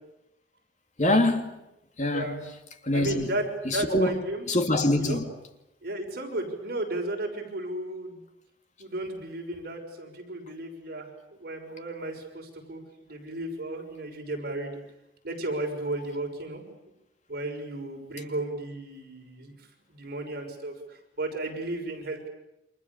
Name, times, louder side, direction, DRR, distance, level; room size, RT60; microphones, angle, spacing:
voice 1, 1.0-1.6 2.0-2.5 2.8-3.3 3.6-4.2 4.5-5.2, left 1 dB, 45° left, 2.6 m, -24 dB
voice 2, 2.9-4.5 5.0-5.2 5.8-8.2 8.8-11.1 11.4-14.8 15.2-16.6 17.3-19.5 19.9-20.7 21.2-22.3, right 2 dB, 60° right, 6.3 m, -34 dB
29.0 x 26.0 x 7.2 m
head